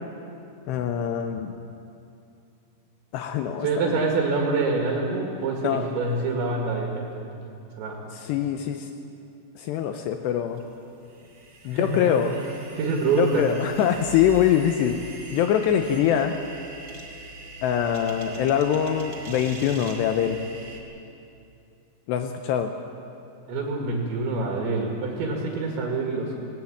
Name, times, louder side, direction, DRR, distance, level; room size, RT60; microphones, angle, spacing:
voice 1, 0.7-1.5 3.1-4.1 5.6-5.9 8.1-8.9 9.6-10.6 11.7-12.4 13.2-16.4 17.6-20.4 22.1-22.7, left 9 dB, 85° left, 6 dB, 2.6 m, -24 dB
voice 2, 3.6-7.3 7.8-8.0 11.7-12.2 12.8-13.5 23.5-26.3, right 3 dB, 70° right, 0 dB, 4.0 m, -26 dB
sound 1, 10.6-20.8, right 2 dB, 35° right, 1.6 m, -42 dB
19.0 x 18.0 x 8.7 m, 2.6 s
omnidirectional pair, 5.6 m